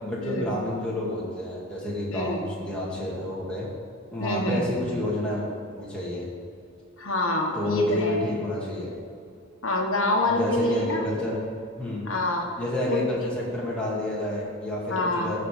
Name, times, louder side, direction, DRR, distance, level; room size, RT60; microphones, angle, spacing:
voice 1, 0.0-3.7 4.1-5.4 5.8-6.3 7.5-9.0 10.2-11.4 11.8-12.0 12.6-15.4, left 1 dB, 5° left, -7 dB, 2.2 m, -29 dB
voice 2, 2.1-2.4 4.2-4.8 7.0-8.2 9.6-11.0 12.0-12.5 12.9-13.1 14.9-15.4, left 1 dB, 70° left, 1 dB, 1.4 m, -26 dB
14.5 x 5.0 x 5.0 m, 2.4 s
head